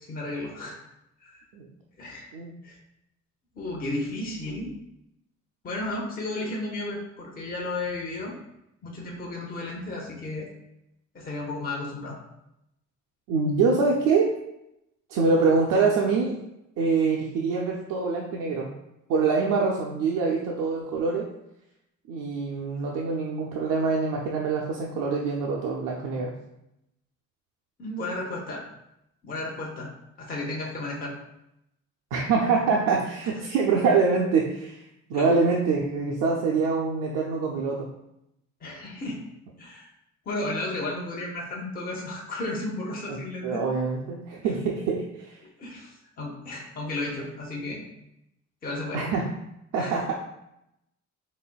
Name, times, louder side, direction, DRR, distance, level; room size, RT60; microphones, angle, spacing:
voice 1, 0.1-0.8 1.2-1.4 2.0-2.3 2.6-2.8 3.5-4.8 5.6-8.3 8.8-10.5 11.1-12.2 27.8-28.6 29.2-29.9 30.2-31.1 33.4-33.5 35.1-35.3 38.6-39.3 39.6-39.9 40.3-43.7 45.6-47.8 48.6-49.0 49.8-50.0, left 2 dB, 30° left, -2 dB, 0.7 m, -33 dB
voice 2, 13.3-14.3 15.1-16.4 16.8-18.7 19.1-21.3 22.1-26.3 32.1-34.8 35.1-37.9 43.1-43.2 43.4-45.4 48.9-49.3 49.7-50.1, right 4 dB, 90° right, -2 dB, 0.6 m, -25 dB
4.1 x 3.4 x 2.2 m, 0.83 s
cardioid pair, 120°, 30 cm